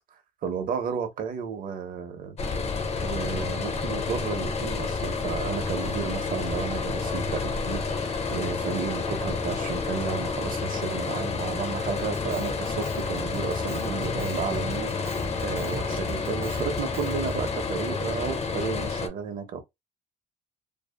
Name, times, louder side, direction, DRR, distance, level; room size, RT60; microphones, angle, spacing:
voice 1, 0.4-2.4 3.0-19.6, right 6 dB, 55° right, 0.7 m, -33 dB
sound 1, 2.4-19.1, left 4 dB, 40° left, 0.6 m, -29 dB
Drum kit, 12.0-17.6, right 5 dB, 15° right, 0.3 m, -44 dB
2.7 x 2.3 x 2.2 m
cardioid pair, 110°, 17 cm